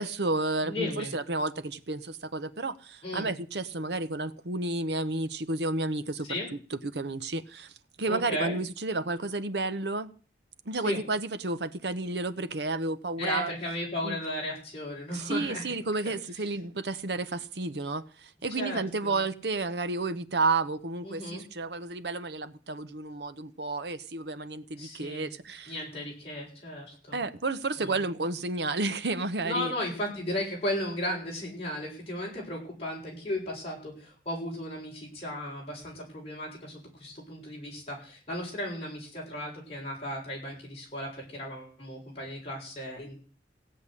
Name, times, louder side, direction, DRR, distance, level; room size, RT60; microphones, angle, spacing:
voice 1, 0.0-6.4 6.7-7.7 8.0-10.1 10.7-13.5 14.0-14.2 15.1-25.7 27.1-29.7, right 3 dB, 80° right, 1.0 m, -31 dB
voice 2, 0.6-1.1 3.0-3.3 6.2-6.5 8.0-8.6 10.8-11.0 13.2-15.8 16.0-16.1 18.6-19.2 21.0-21.4 24.8-25.3 25.7-27.2 27.8-28.0 29.4-43.1, left 1 dB, 35° left, 7.2 m, -35 dB
16.5 x 5.7 x 9.9 m
head